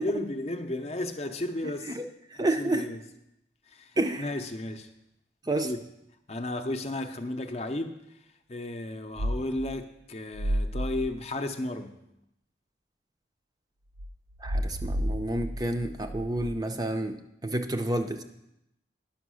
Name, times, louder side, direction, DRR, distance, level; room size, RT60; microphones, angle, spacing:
voice 1, 0.0-2.0 2.3-3.0 3.7-4.9 5.6-5.8 6.3-8.0 8.5-12.0, left 1 dB, 35° left, 0.6 m, -34 dB
voice 2, 2.4-2.9 4.0-4.3 5.5-5.7 14.4-17.2 17.4-18.2, right 1 dB, 20° right, 0.5 m, -29 dB
sound 1, 9.2-9.7 10.3-11.1 14.0-16.5, equal, 85° right, 0.6 m, -31 dB
10.5 x 6.3 x 6.3 m
head